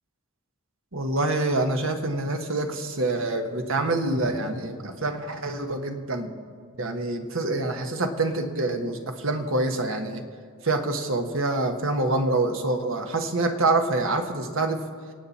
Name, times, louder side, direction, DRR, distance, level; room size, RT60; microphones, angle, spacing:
voice 1, 0.9-6.3 6.8-10.2 10.6-14.8, right 2 dB, 65° right, 5 dB, 1.3 m, -26 dB
26.0 x 8.7 x 4.3 m, 2.1 s
head